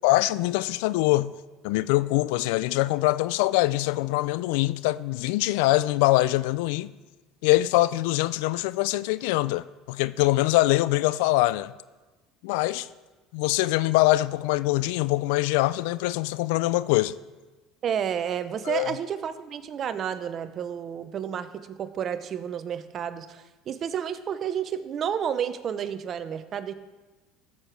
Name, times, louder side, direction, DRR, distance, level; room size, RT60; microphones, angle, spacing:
voice 1, 0.0-1.3 1.6-6.9 7.4-11.7 12.4-12.9 13.3-17.1 18.7-18.9, left 18 dB, 80° left, 0.4 m, -23 dB
voice 2, 17.8-26.7, right 8 dB, 45° right, 0.8 m, -31 dB
14.0 x 6.8 x 6.1 m
supercardioid pair, 95°, 0 cm